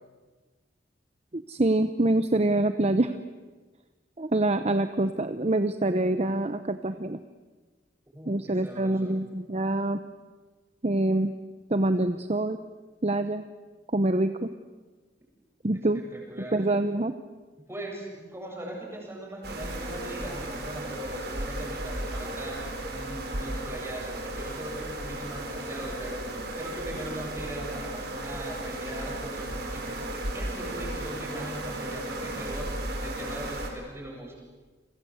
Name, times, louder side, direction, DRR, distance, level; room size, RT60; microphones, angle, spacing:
voice 1, 1.3-3.1 4.2-7.2 8.3-10.0 10.8-11.3 11.7-12.6 13.0-13.4 13.9-14.5 15.6-16.0 16.5-17.1, right 2 dB, 35° right, 10 dB, 0.8 m, -25 dB
voice 2, 8.1-9.2 15.9-16.8 17.7-34.4, right 1 dB, 15° right, -1 dB, 7.6 m, -40 dB
sound 1, 19.4-33.7, right 1 dB, 60° right, 5.2 m, -35 dB
30.0 x 24.0 x 8.1 m, 1.3 s
head